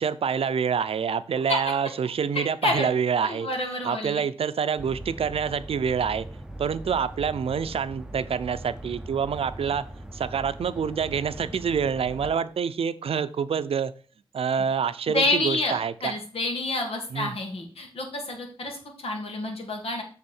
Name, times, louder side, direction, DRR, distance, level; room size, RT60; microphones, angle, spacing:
voice 1, 0.0-3.5 3.8-6.3 6.6-9.8 10.1-13.9 14.3-16.1 17.1-17.3, right 7 dB, 85° right, 13 dB, 0.5 m, -27 dB
voice 2, 2.3-2.9 3.2-4.2 15.1-20.0, left 2 dB, 85° left, 3 dB, 1.9 m, -28 dB
sound 1, 4.8-12.4, right 1 dB, 5° right, 0.7 m, -40 dB
7.6 x 3.7 x 6.0 m, 0.41 s
wide cardioid pair, 90°, 10 cm